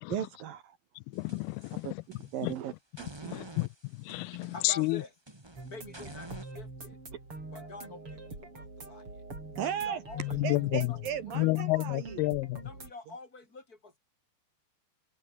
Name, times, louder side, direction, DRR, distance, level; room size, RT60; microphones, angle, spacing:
voice 1, 0.1-0.8 1.8-1.9 2.3-3.4 9.6-10.0 10.4-12.2, right 9 dB, 65° right, 2.8 m, -36 dB
voice 2, 1.1-1.9 2.4-2.5 3.3-3.7 4.1-5.0 10.3-10.9 11.4-12.6, left 24 dB, 85° left, 2.3 m, -30 dB
sound 1, 1.1-2.6 3.0-6.5, right 1 dB, 10° right, 1.3 m, -49 dB
voice 3, 4.5-5.1 5.6-7.0 7.5-9.1 9.6-10.6 10.9-11.0 11.3-11.5 12.6-14.0, left 3 dB, 20° left, 6.9 m, -47 dB
sound 2, 5.6-12.9, right 2 dB, 30° right, 8.4 m, -45 dB
omnidirectional pair, 4.9 m